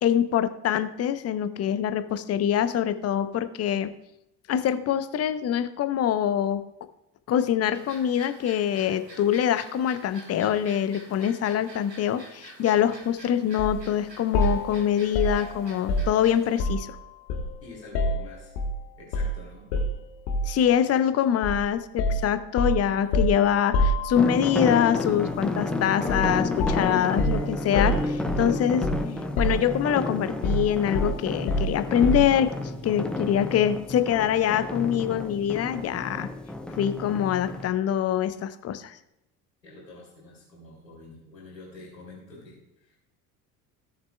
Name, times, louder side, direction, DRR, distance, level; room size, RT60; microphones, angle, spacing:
voice 1, 0.0-3.9 4.5-6.7 7.3-16.9 20.4-28.9 29.4-36.3 36.8-39.0, left 9 dB, 30° left, 11 dB, 0.8 m, -24 dB
sound 1, 7.7-16.6, right 2 dB, 90° right, 1.1 m, -48 dB
sound 2, 13.6-13.8 14.3-16.9 17.3-18.8 19.1-19.4 19.7-20.6 21.4-21.6 22.0-24.5 26.1-26.3 26.6-29.1 29.4-30.0 30.4-32.4, left 1 dB, 50° left, 1.4 m, -27 dB
voice 2, 17.6-18.5 19.0-19.7 39.6-43.0, left 2 dB, 80° left, -4 dB, 3.0 m, -46 dB
sound 3, 24.2-37.7, left 2 dB, ahead, 0.8 m, -31 dB
16.5 x 6.6 x 2.3 m, 0.86 s
figure-of-eight pair, 60°, 49 cm